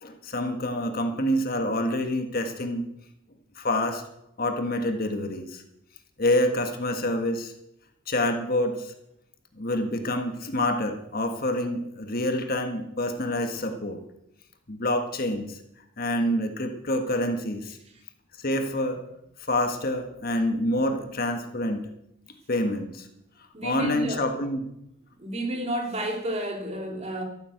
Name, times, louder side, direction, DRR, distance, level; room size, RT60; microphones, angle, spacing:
voice 1, 0.0-2.8 3.6-4.0 4.4-5.6 6.2-7.5 8.1-8.9 9.6-14.0 14.7-15.6 16.0-17.8 18.4-19.0 19.4-21.9 22.5-23.1 23.6-24.7, left 1 dB, 40° left, 6 dB, 1.6 m, -27 dB
voice 2, 23.5-24.4 25.2-27.2, right 1 dB, 30° right, 2 dB, 2.7 m, -31 dB
13.5 x 11.5 x 8.0 m, 0.81 s
head